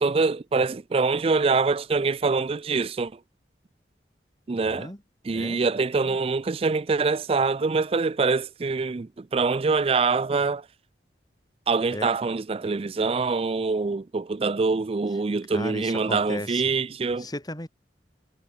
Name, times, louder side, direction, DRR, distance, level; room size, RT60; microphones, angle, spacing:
voice 1, 0.0-3.2 4.5-4.9 5.2-10.7 11.7-17.3, right 4 dB, 30° right, 0.4 m, -24 dB
voice 2, 4.6-5.0 5.3-5.7 6.0-6.2 11.9-12.1 15.5-16.6 17.2-17.7, left 1 dB, 20° left, 3.3 m, -35 dB
head